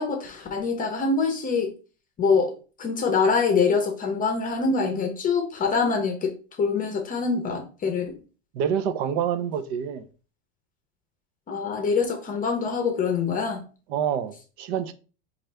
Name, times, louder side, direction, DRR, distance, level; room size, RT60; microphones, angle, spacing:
voice 1, 0.0-1.7 2.2-6.3 6.6-8.1 11.5-13.6, left 5 dB, 25° left, 0.7 m, -24 dB
voice 2, 8.5-10.0 13.9-14.9, right 8 dB, 65° right, 0.6 m, -27 dB
5.5 x 2.5 x 3.2 m
supercardioid pair, 145°, 34 cm